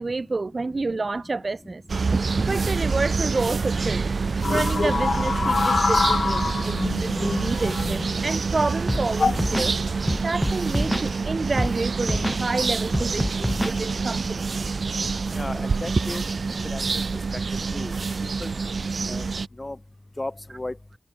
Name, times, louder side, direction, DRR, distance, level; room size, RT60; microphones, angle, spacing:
voice 1, 0.0-1.8 2.1-4.1 4.5-9.7 10.2-14.6, right 3 dB, 55° right, 0.8 m, -29 dB
sound 1, 1.9-19.5, right 4 dB, 80° right, 0.4 m, -27 dB
sound 2, 4.4-8.3 9.1-9.5 10.4-10.8, left 4 dB, 85° left, 0.6 m, -25 dB
Scratching (performance technique), 8.9-9.0 9.3-9.7 10.1-11.1 11.6-11.7 12.0-12.4 12.9-13.8, equal, ahead, 0.5 m, -26 dB
voice 2, 15.4-16.2 16.7-17.0 17.7-17.9 18.4-18.5 19.1-19.2 19.6-19.8 20.2-20.7, left 2 dB, 30° left, 1.3 m, -33 dB
wide cardioid pair, 75°, 0 cm